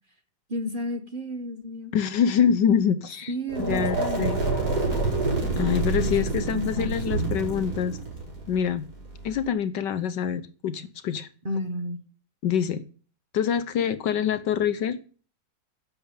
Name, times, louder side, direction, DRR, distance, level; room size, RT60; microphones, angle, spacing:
voice 1, 0.5-1.9 3.3-4.3 6.0-6.9 11.4-12.0, left 1 dB, 30° right, 1.4 m, -32 dB
voice 2, 1.9-3.3 3.7-4.4 5.6-8.0 8.5-8.9 9.2-11.3 12.4-12.8 13.3-15.0, left 8 dB, 65° left, 1.3 m, -25 dB
sound 1, 3.5-9.5, right 3 dB, 50° right, 5.6 m, -27 dB
10.5 x 7.6 x 8.9 m
omnidirectional pair, 2.2 m